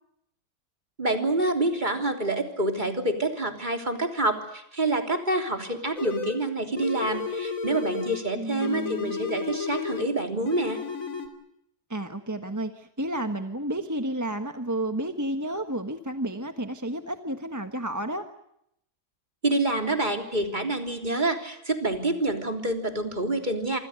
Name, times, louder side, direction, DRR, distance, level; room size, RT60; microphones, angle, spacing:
voice 1, 1.0-10.8 19.4-23.8, right 2 dB, 30° right, 5 dB, 3.5 m, -27 dB
sound 1, 6.0-6.4 6.8-8.3 8.6-10.1 10.5-11.3, left 5 dB, 60° left, 3.5 m, -32 dB
voice 2, 8.3-9.1 11.9-18.2, right 1 dB, 10° right, 7 dB, 1.3 m, -31 dB
27.0 x 26.0 x 6.6 m, 0.76 s
omnidirectional pair, 1.6 m